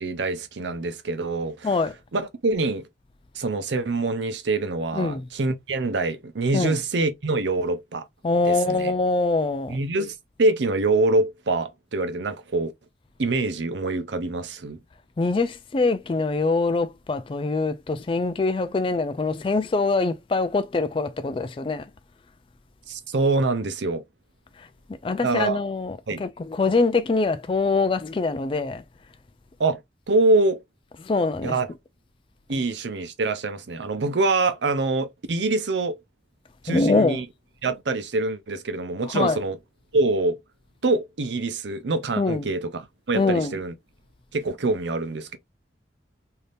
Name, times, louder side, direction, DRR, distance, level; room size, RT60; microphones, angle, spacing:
voice 1, 0.0-1.7 2.1-2.9 3.3-8.1 8.4-8.9 9.7-12.7 13.2-14.8 22.9-24.0 25.2-25.6 26.1-26.2 29.6-29.8 30.1-30.6 31.4-31.7 32.5-36.0 36.6-37.3 37.6-39.6 39.9-40.4 40.8-43.7 44.3-45.4, right 2 dB, 80° right, 0.7 m, -25 dB
voice 2, 4.9-5.3 6.5-6.8 8.2-9.8 15.2-21.9 24.6-24.7 25.0-28.8 31.0-31.5 36.7-37.2 39.1-39.4 42.2-42.4 43.2-43.5, left 3 dB, 30° left, 0.3 m, -24 dB
3.3 x 2.8 x 2.5 m
head